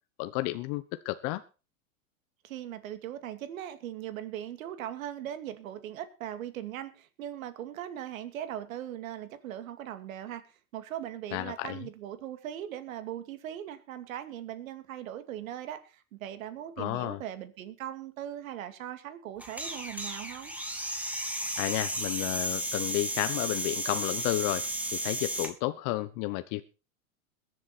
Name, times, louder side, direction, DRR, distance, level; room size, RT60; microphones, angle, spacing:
voice 1, 0.2-1.4 11.3-11.8 16.8-17.2 21.6-24.7 25.0-26.6, left 17 dB, 45° left, 11 dB, 1.1 m, -31 dB
voice 2, 2.4-20.5, right 11 dB, 70° right, 10 dB, 2.4 m, -39 dB
sound 1, 19.4-25.5, right 1 dB, 5° right, 2.6 m, -34 dB
22.0 x 7.6 x 4.3 m, 0.32 s
hypercardioid pair, 105°, 42 cm